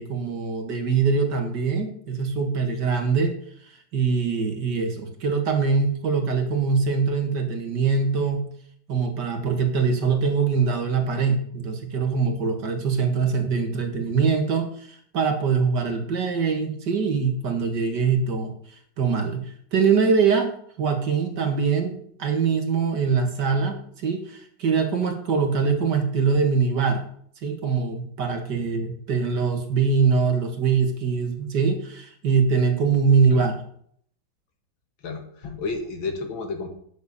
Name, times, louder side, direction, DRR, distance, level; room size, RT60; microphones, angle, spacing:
voice 1, 0.0-3.3 3.9-8.5 8.9-18.5 19.0-19.4 19.7-20.5 20.8-27.0 27.4-33.6, right 5 dB, 60° right, 4 dB, 2.2 m, -23 dB
voice 2, 35.0-36.7, left 4 dB, 85° left, 5 dB, 2.5 m, -31 dB
9.5 x 6.7 x 7.0 m, 0.63 s
omnidirectional pair, 2.1 m